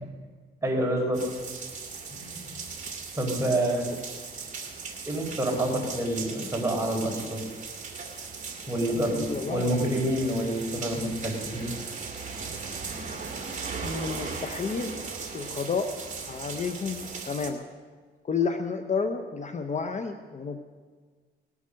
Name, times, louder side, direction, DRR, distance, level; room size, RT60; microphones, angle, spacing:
voice 1, 0.6-1.2 2.1-2.5 3.1-3.9 5.1-7.4 8.7-11.8, right 1 dB, 15° right, -1 dB, 4.3 m, -28 dB
sound 1, 1.1-17.5, right 5 dB, 40° right, 2.4 m, -38 dB
voice 2, 8.9-9.8 13.8-15.0 15.3-16.0 16.2-17.6 18.2-20.6, left 5 dB, 35° left, 6 dB, 0.9 m, -31 dB
19.0 x 8.5 x 6.4 m, 1.5 s
cardioid pair, 90°, 20 cm